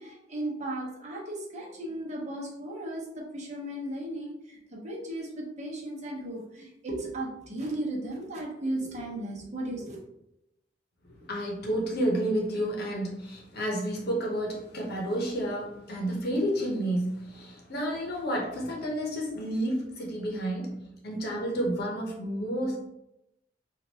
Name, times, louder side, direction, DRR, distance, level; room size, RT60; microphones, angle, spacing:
voice 1, 0.0-10.0, right 1 dB, 40° right, -3 dB, 1.0 m, -36 dB
voice 2, 11.1-22.9, right 1 dB, 60° left, -1 dB, 0.9 m, -30 dB
4.4 x 2.5 x 2.8 m, 0.85 s
head